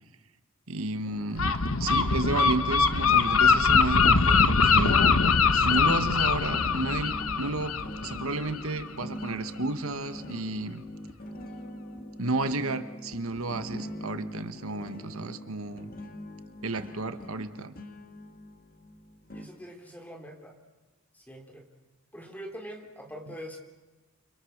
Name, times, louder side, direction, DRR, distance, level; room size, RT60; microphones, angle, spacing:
voice 1, 0.7-1.5 1.8-10.8 12.2-15.9 16.6-17.7 23.3-23.4, right 2 dB, 85° right, 10 dB, 1.5 m, -32 dB
sound 1, 1.0-19.5, left 1 dB, 45° left, 2.2 m, -43 dB
Gull seagull, 1.4-8.9, left 5 dB, 90° left, 1.2 m, -23 dB
voice 2, 19.3-20.6 21.1-21.6 22.1-23.6, equal, 10° left, 2 dB, 3.8 m, -43 dB
29.0 x 26.0 x 6.6 m, 1.2 s
head